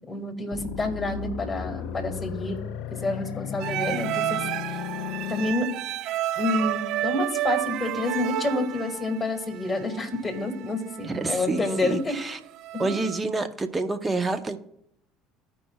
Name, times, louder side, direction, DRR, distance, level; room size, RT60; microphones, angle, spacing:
voice 1, 0.1-2.6 2.9-4.8 5.3-5.7 6.4-12.1 12.7-12.9, left 2 dB, 20° left, 4 dB, 2.1 m, -28 dB
sound 1, 0.5-5.5, left 10 dB, 65° left, 0.4 m, -35 dB
sound 2, 3.6-13.2, right 14 dB, 60° right, 0.3 m, -31 dB
voice 2, 11.0-12.4 12.8-14.6, right 3 dB, 20° right, 8 dB, 1.0 m, -28 dB
15.5 x 5.3 x 2.4 m, 0.75 s
hypercardioid pair, 65°, 0 cm